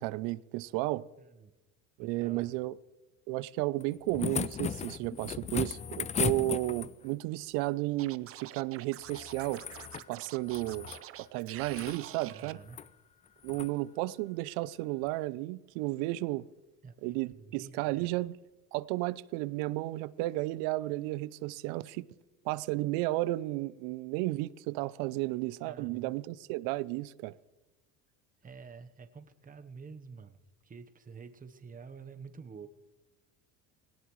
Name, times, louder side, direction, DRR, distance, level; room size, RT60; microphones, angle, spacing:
voice 1, 0.0-1.0 2.0-2.8 3.3-9.6 10.1-10.9 11.2-12.6 13.4-16.5 17.0-18.3 18.7-22.1 22.4-27.3, right 19 dB, 80° right, 0.6 m, -33 dB
voice 2, 1.2-1.5 2.0-2.5 12.3-12.8 16.8-18.1 25.6-26.1 28.4-32.7, right 5 dB, 25° right, 1.0 m, -49 dB
sound 1, 3.8-7.1 9.0-10.1 10.4-11.0 11.6-12.0 12.7-12.9 13.4-13.7 15.1-15.2, left 7 dB, 20° left, 0.3 m, -36 dB
Scratching (performance technique), 8.0-12.5, right 13 dB, 40° right, 0.5 m, -47 dB
18.0 x 18.0 x 3.1 m
supercardioid pair, 100°, 37 cm